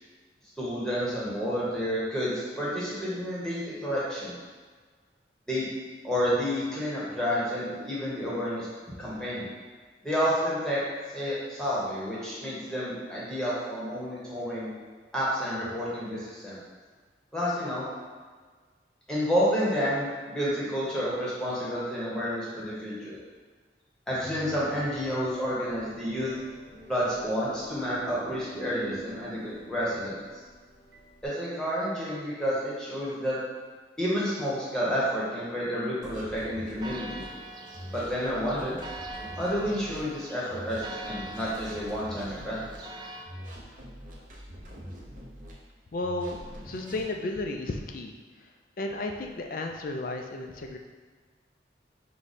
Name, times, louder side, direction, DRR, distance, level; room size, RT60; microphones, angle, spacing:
voice 1, 0.6-4.4 5.5-5.7 6.0-8.7 9.0-9.5 10.0-10.8 11.1-14.7 15.1-16.6 17.3-17.9 19.1-23.2 24.1-26.3 26.9-30.2 31.2-33.4 34.0-37.2 37.9-38.8 39.4-42.6, equal, 5° left, -8 dB, 1.1 m, -30 dB
sound 1, 24.2-31.3, right 2 dB, 80° right, 1.4 m, -45 dB
sound 2, 36.0-37.3 37.7-40.0 40.5-42.8 43.3-45.5 46.0-47.1, equal, 45° right, 0.7 m, -44 dB
Church bell, 36.8-43.2, right 2 dB, 25° right, 0.4 m, -43 dB
voice 2, 45.9-46.4 46.7-48.1 48.8-50.8, left 2 dB, 50° left, 3 dB, 0.4 m, -33 dB
4.8 x 2.3 x 4.1 m, 1.5 s
head